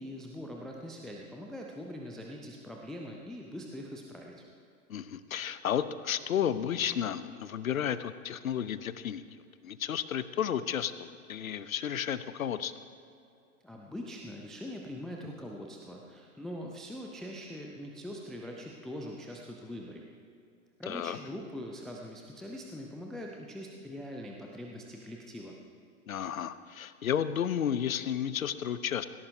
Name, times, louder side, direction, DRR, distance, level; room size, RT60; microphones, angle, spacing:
voice 1, 0.0-4.4 13.6-20.0 20.8-25.6, equal, ahead, -1 dB, 0.4 m, -42 dB
voice 2, 4.9-9.2 9.6-12.7 20.9-21.2 26.1-29.1, left 9 dB, 70° left, 14 dB, 0.8 m, -32 dB
18.0 x 17.0 x 2.7 m, 2.5 s
figure-of-eight pair, 95°, 43 cm